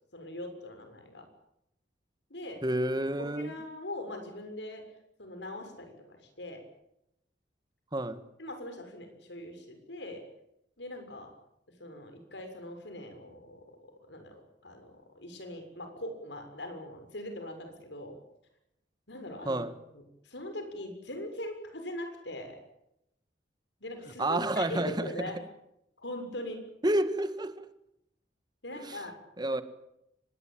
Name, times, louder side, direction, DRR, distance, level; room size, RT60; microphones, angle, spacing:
voice 1, 0.1-1.2 2.3-2.6 3.2-4.8 5.2-6.6 8.4-10.2 10.8-11.3 11.8-13.8 14.0-18.1 19.1-19.6 19.9-22.5 23.8-25.4 26.0-26.6 28.6-29.2, left 1 dB, 75° left, 6.7 m, -41 dB
voice 2, 2.6-3.5 7.9-8.2 19.4-19.7 24.2-25.1 26.8-27.6 28.8-29.0 29.4-29.6, right 1 dB, 25° right, 1.7 m, -29 dB
24.5 x 20.5 x 9.1 m
head